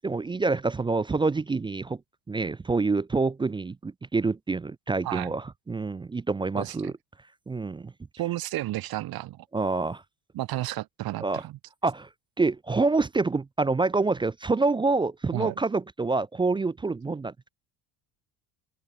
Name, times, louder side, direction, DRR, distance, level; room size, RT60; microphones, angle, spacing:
voice 1, 0.0-2.0 2.3-6.9 7.5-7.9 9.5-10.0 11.2-11.4 11.8-12.1 12.4-17.5, right 3 dB, 15° right, 0.4 m, -27 dB
voice 2, 6.6-6.9 8.1-9.5 10.3-11.6 15.3-15.5, right 15 dB, 65° right, 2.9 m, -32 dB
open air
supercardioid pair, 75°, 39 cm